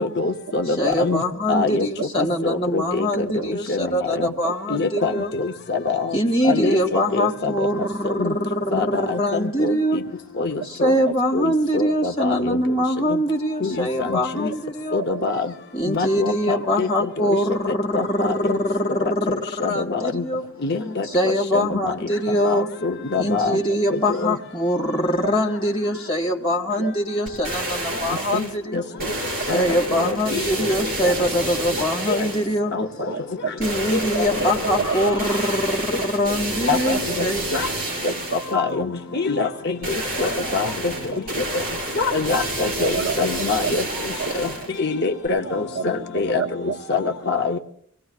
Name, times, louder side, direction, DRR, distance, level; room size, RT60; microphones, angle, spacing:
voice 1, 0.0-1.2 1.5-1.9 2.2-3.1 3.7-3.8 4.2-4.3 4.7-5.1 5.4-6.1 6.4-7.5 8.2-8.3 8.7-9.2 9.6-9.7 10.4-10.9 11.3-12.6 13.6-14.5 14.9-15.5 15.9-16.9 17.9-18.6 19.6-20.2 20.6-21.1 21.5-21.8 22.4-22.6 22.8-23.6 24.2-24.3 28.3-28.5 28.7-28.8 29.5-30.4 32.1-32.2 32.7-32.9 33.9-34.3 36.7-37.0 37.5-37.7 38.5-39.8 40.2-40.7 42.0-43.8 44.3-44.5 44.8-46.4 46.9-47.6, left 4 dB, 45° left, 4 dB, 0.7 m, -24 dB
voice 2, 0.7-5.3 6.1-10.0 10.6-15.0 15.7-20.4 21.0-22.7 23.2-28.8 29.4-32.7 33.6-37.4, equal, 25° left, -1 dB, 2.2 m, -23 dB
voice 3, 4.1-4.5 7.8-7.9 15.1-15.2 23.7-23.8 26.8-26.9 28.3-28.4 33.1-33.5 34.9-35.0 38.1-38.4 42.8-43.2 43.6-43.8 44.2-44.4 45.8-45.9 46.4-46.8, right 6 dB, 70° right, 7 dB, 0.6 m, -29 dB
sound 1, 27.3-28.6 29.0-32.6 33.6-38.6 39.8-44.8 45.3-45.4, right 1 dB, 40° right, 5.0 m, -29 dB
25.0 x 18.0 x 2.4 m, 0.63 s
head